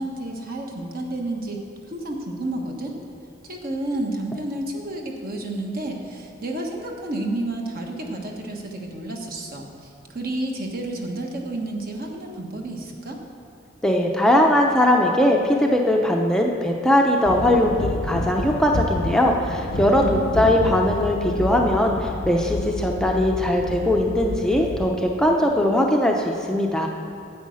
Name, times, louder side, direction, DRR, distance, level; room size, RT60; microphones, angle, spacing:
voice 1, 0.0-1.6 1.9-3.0 3.4-13.2 19.8-20.6, right 1 dB, 50° right, 1 dB, 1.3 m, -30 dB
voice 2, 13.8-17.8 18.0-26.9, left 1 dB, 5° left, 0 dB, 0.6 m, -20 dB
sound 1, 17.3-24.9, left 2 dB, 70° left, 0.7 m, -29 dB
9.5 x 8.4 x 6.3 m, 2.5 s
head